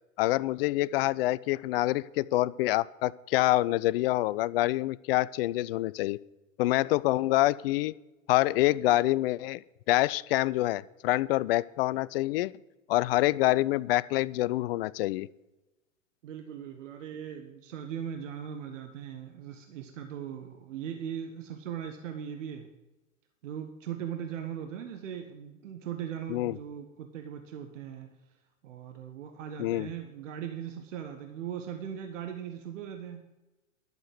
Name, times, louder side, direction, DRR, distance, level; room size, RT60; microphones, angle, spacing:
voice 1, 0.2-6.2 6.6-7.9 8.3-9.6 9.9-12.5 12.9-15.3 26.3-26.6 29.6-29.9, left 17 dB, 50° left, 20 dB, 0.4 m, -26 dB
voice 2, 16.2-22.7 23.4-28.1 28.6-33.2, right 9 dB, 65° right, 6 dB, 1.3 m, -39 dB
12.0 x 6.7 x 7.7 m, 1.1 s
hypercardioid pair, 105°, 40 cm